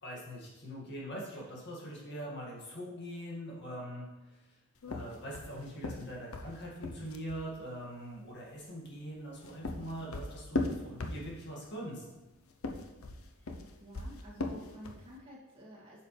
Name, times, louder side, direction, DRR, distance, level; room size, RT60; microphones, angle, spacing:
voice 1, 0.0-4.6 4.9-12.0, equal, 50° left, -3 dB, 2.0 m, -43 dB
sound 1, 4.8-7.5 9.2-11.6 12.5-15.1, left 2 dB, 65° left, 0.8 m, -38 dB
voice 2, 13.4-16.0, equal, 25° right, -7 dB, 2.4 m, -51 dB
9.0 x 6.8 x 3.3 m, 1.1 s
head